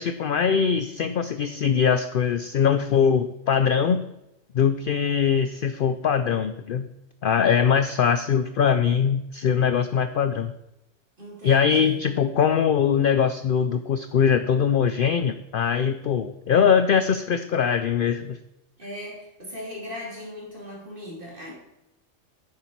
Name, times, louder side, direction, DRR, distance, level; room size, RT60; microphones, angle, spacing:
voice 1, 0.0-4.0 4.5-6.9 7.2-10.5 11.4-18.4, left 7 dB, 65° left, 11 dB, 0.5 m, -22 dB
voice 2, 11.2-12.0 18.8-21.5, left 1 dB, 40° right, -4 dB, 3.2 m, -38 dB
9.9 x 7.0 x 4.5 m, 0.88 s
omnidirectional pair, 1.3 m